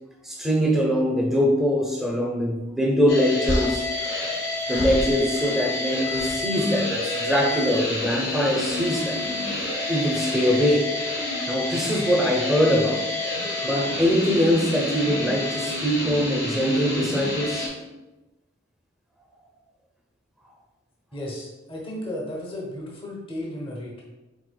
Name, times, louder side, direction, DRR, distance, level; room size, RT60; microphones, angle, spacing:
voice 1, 0.2-3.8 4.7-9.2 9.9-10.9 11.5-13.0 13.6-17.7, equal, ahead, -1 dB, 0.6 m, -23 dB
sound 1, 3.1-17.7, left 2 dB, 55° left, 1.2 m, -29 dB
sound 2, 3.5-5.8 6.0-6.5 7.5-7.8 9.2-9.4, left 1 dB, 70° left, 0.6 m, -32 dB
voice 2, 21.1-24.0, left 1 dB, 30° left, -3 dB, 0.8 m, -34 dB
4.7 x 4.2 x 2.2 m, 1.1 s
head